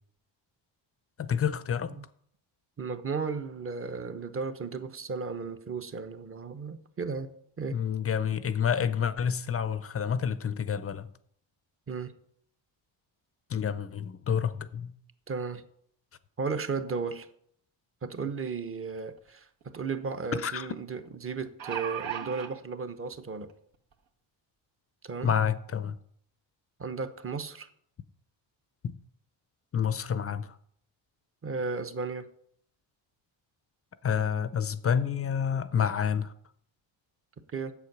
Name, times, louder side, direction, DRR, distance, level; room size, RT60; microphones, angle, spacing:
voice 1, 1.2-1.9 7.7-11.1 13.5-14.9 20.3-20.7 25.2-26.0 29.7-30.6 34.0-36.3, left 7 dB, 30° left, 0.5 m, -28 dB
voice 2, 2.8-7.3 7.6-7.8 11.9-12.1 15.3-15.6 16.4-17.3 18.0-23.5 25.0-25.3 26.8-27.7 31.4-32.3 37.5-37.7, right 5 dB, 30° right, 0.9 m, -35 dB
sound 1, 19.2-19.3 19.6-19.7 21.3-22.5 23.4-23.5 23.9-24.0, right 9 dB, 70° right, 1.6 m, -35 dB
8.3 x 7.6 x 6.0 m
cardioid pair, 115°, 47 cm